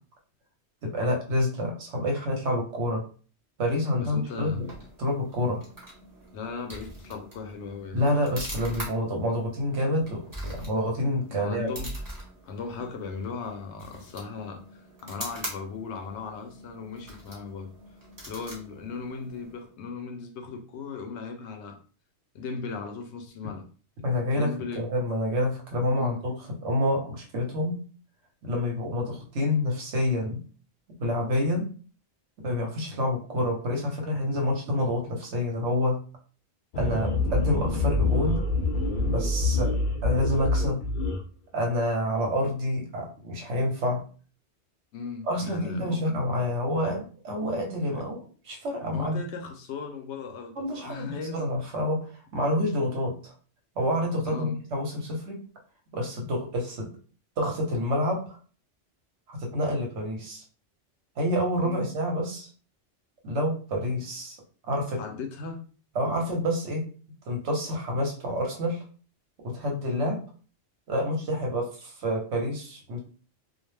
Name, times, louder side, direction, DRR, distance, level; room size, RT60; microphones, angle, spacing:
voice 1, 0.8-3.0 3.6-4.7 5.0-5.6 7.9-11.7 24.0-24.5 24.8-26.3 26.6-27.8 28.4-30.4 31.0-31.7 32.4-36.0 36.8-38.4 39.0-39.7 40.0-40.8 41.5-44.0 45.3-49.2 50.6-53.3 53.8-55.4 55.9-56.9 57.4-58.4 59.3-60.4 61.2-62.5 63.2-64.4 64.7-65.0 65.9-66.8 67.3-68.8 69.4-70.2 70.9-73.0, left 1 dB, 80° right, 1 dB, 1.1 m, -28 dB
voice 2, 4.0-4.6 6.3-8.0 11.3-12.1 12.4-17.7 18.3-21.8 22.3-23.7 24.3-24.8 25.9-26.2 44.9-46.0 47.9-48.0 48.9-51.5 54.2-54.6 61.6-61.8 65.0-65.6, left 4 dB, 80° left, 5 dB, 0.9 m, -37 dB
sound 1, 4.2-19.7, right 1 dB, 20° right, 0.9 m, -43 dB
sound 2, 36.7-41.2, left 2 dB, 60° left, 0.6 m, -26 dB
2.4 x 2.1 x 3.1 m, 0.39 s
omnidirectional pair, 1.2 m